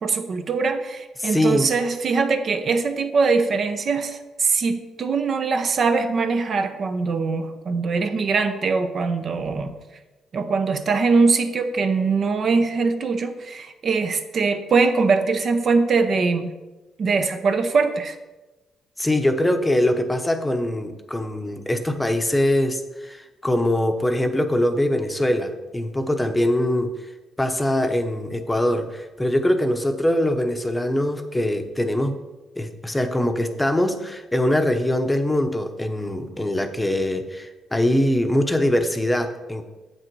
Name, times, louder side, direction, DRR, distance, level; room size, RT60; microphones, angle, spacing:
voice 1, 0.0-9.7 10.3-16.5 17.0-18.2, right 4 dB, 50° right, 8 dB, 0.7 m, -22 dB
voice 2, 1.2-1.7 19.0-26.9 27.4-32.2 32.6-39.7, left 1 dB, 10° left, 6 dB, 0.8 m, -22 dB
7.7 x 6.5 x 4.6 m, 1.1 s
cardioid pair, 90°, 0 cm